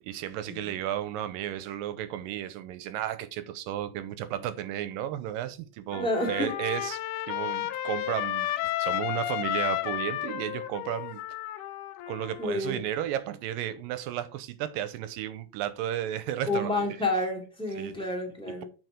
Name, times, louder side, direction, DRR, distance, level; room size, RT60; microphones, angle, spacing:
voice 1, 0.0-7.0 7.3-11.2 12.1-16.8 17.8-17.9 18.5-18.6, right 11 dB, 80° right, 2.2 m, -33 dB
Trumpet, 5.9-12.6, left 14 dB, 80° left, 1.9 m, -32 dB
voice 2, 5.9-6.5 12.4-12.8 16.5-18.6, left 2 dB, 5° left, 0.9 m, -29 dB
7.8 x 4.8 x 4.9 m
omnidirectional pair, 4.3 m